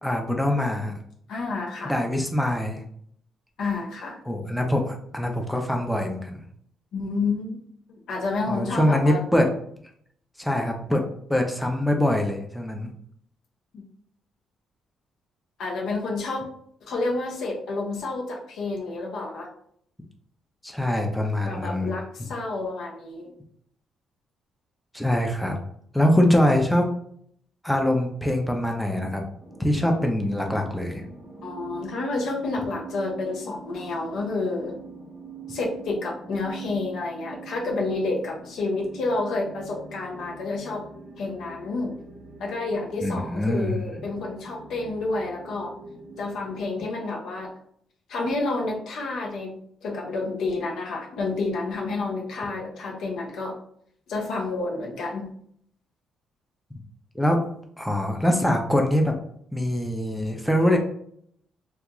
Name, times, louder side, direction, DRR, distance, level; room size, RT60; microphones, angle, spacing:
voice 1, 0.0-0.9 1.8-2.8 4.3-6.4 8.5-9.5 10.4-11.0 11.3-12.9 20.6-21.9 22.2-22.3 24.9-25.6 25.9-26.9 27.6-29.2 29.6-31.0 43.0-43.8 57.1-57.4 57.8-59.1 59.5-60.8, left 1 dB, 5° left, 2 dB, 0.4 m, -23 dB
voice 2, 1.3-1.9 3.6-4.2 6.9-7.6 7.9-9.2 13.7-13.8 15.6-16.4 16.9-19.5 21.4-23.3 31.4-34.8 35.5-40.8 41.2-42.0 42.4-45.7 46.2-47.5 48.1-53.6 54.1-55.3, left 3 dB, 75° left, 0 dB, 0.6 m, -29 dB
sound 1, 29.4-46.6, right 4 dB, 30° right, 0.8 m, -43 dB
2.3 x 2.2 x 2.9 m, 0.66 s
cardioid pair, 90°, 0 cm